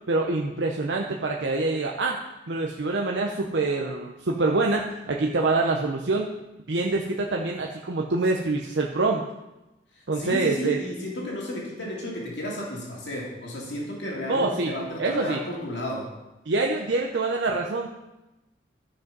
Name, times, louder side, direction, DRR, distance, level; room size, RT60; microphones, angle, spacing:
voice 1, 0.1-2.2 2.5-6.3 6.7-9.2 10.1-10.8 14.3-14.7 15.0-15.4 16.5-17.9, right 3 dB, 75° right, 0 dB, 0.7 m, -25 dB
voice 2, 10.2-16.1, left 1 dB, 75° left, -3 dB, 2.4 m, -33 dB
12.0 x 5.3 x 5.3 m, 0.99 s
head